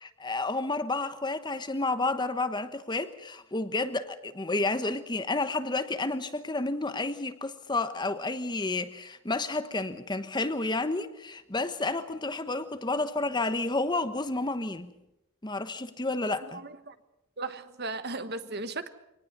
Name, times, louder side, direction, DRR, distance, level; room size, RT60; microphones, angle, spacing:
voice 1, 0.0-14.9 15.4-16.6, left 2 dB, 20° left, 1.1 m, -30 dB
voice 2, 16.2-16.9 17.4-18.9, right 3 dB, 50° right, 1.4 m, -37 dB
25.0 x 19.0 x 6.7 m
head